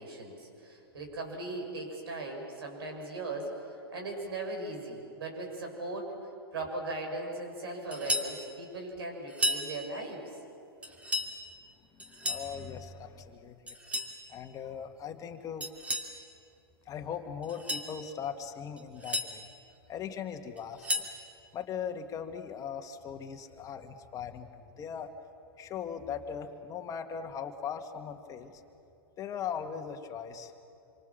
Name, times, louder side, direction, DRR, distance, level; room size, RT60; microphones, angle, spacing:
voice 1, 0.0-3.5 3.9-6.1 6.5-10.3, right 2 dB, 70° right, 1 dB, 7.1 m, -38 dB
sound 1, 7.9-8.3 9.3-9.7 10.8-11.3 12.0-12.5 13.7-14.1 15.6-16.1 17.4-17.9 18.8-19.3 20.6-21.1, left 1 dB, 10° right, 2.5 m, -33 dB
voice 2, 11.8-13.8 14.3-15.7 16.9-19.5 19.9-21.1 21.5-25.1 25.6-28.6 29.2-30.5, left 7 dB, 25° left, 5 dB, 2.1 m, -39 dB
27.0 x 25.0 x 7.4 m, 2.6 s
hypercardioid pair, 105°, 13 cm